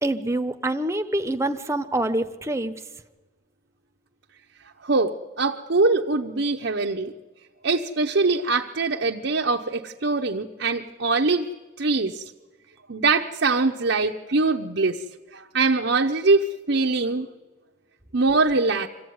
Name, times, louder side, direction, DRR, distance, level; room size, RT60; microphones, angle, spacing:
voice 1, 0.0-2.8, right 1 dB, 15° right, 7 dB, 1.0 m, -26 dB
voice 2, 4.8-7.1 7.6-11.5 11.8-12.2 12.9-15.0 15.3-17.3 18.1-18.9, right 3 dB, 65° right, 1 dB, 0.9 m, -23 dB
25.0 x 15.5 x 9.5 m, 1.2 s
head